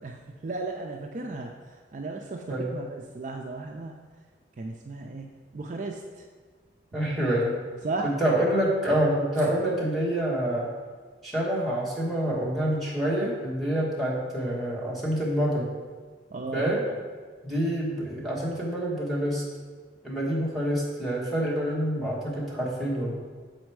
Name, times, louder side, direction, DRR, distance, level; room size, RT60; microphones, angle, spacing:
voice 1, 0.4-3.9 4.6-5.3 5.5-6.0 7.8-8.1 8.9-9.0 16.3-16.7, right 3 dB, 45° right, 2 dB, 0.4 m, -35 dB
voice 2, 6.9-7.6 8.2-10.7 11.2-15.7 16.5-16.8 17.4-19.4 20.0-23.1, right 1 dB, ahead, -8 dB, 1.4 m, -27 dB
6.4 x 4.4 x 4.6 m, 1.5 s
head